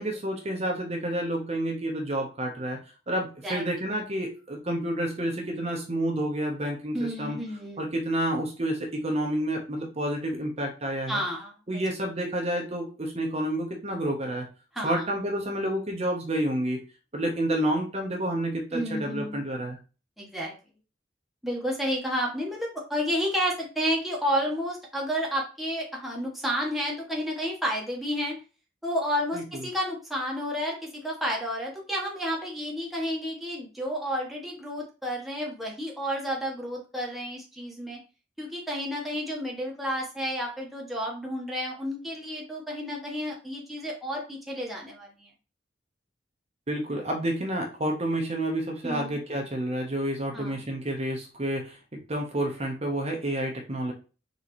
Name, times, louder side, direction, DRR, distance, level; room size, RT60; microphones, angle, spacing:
voice 1, 0.0-2.8 3.1-7.4 7.8-11.2 11.7-14.5 14.8-16.8 17.1-19.8 29.3-29.7 46.7-53.9, right 1 dB, 35° right, 1 dB, 0.9 m, -29 dB
voice 2, 6.9-7.9 11.1-11.5 14.7-15.0 18.7-19.4 20.2-20.5 21.4-28.3 28.8-30.8 31.0-38.0 38.4-45.3 48.8-49.2 50.3-50.6, equal, ahead, -3 dB, 1.1 m, -31 dB
4.1 x 3.9 x 3.0 m, 0.34 s
head